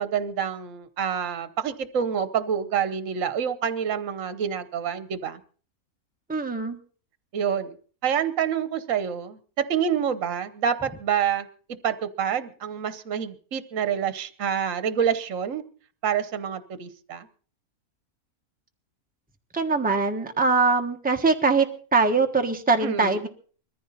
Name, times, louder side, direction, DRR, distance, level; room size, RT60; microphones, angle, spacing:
voice 1, 0.0-5.4 7.3-7.7 8.0-11.5 11.8-15.6 16.0-17.3 22.8-23.2, right 8 dB, 60° right, 12 dB, 1.4 m, -27 dB
voice 2, 6.3-6.8 19.5-21.7 21.9-23.3, right 4 dB, 5° right, 4 dB, 1.3 m, -22 dB
21.5 x 14.5 x 4.1 m, 0.42 s
omnidirectional pair, 1.6 m